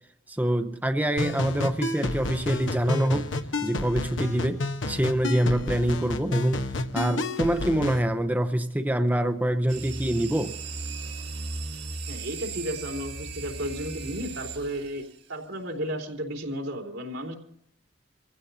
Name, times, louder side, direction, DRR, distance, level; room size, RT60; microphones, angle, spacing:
voice 1, 0.3-3.3 3.6-6.7 6.9-10.6, right 1 dB, 10° right, 7 dB, 0.7 m, -25 dB
sound 1, 1.2-8.0, left 2 dB, 80° left, 1.2 m, -30 dB
sound 2, 9.7-15.2, right 3 dB, 60° right, 1.7 m, -37 dB
voice 2, 12.1-17.3, equal, 80° right, 1 dB, 3.5 m, -33 dB
27.0 x 16.0 x 2.8 m, 0.71 s
head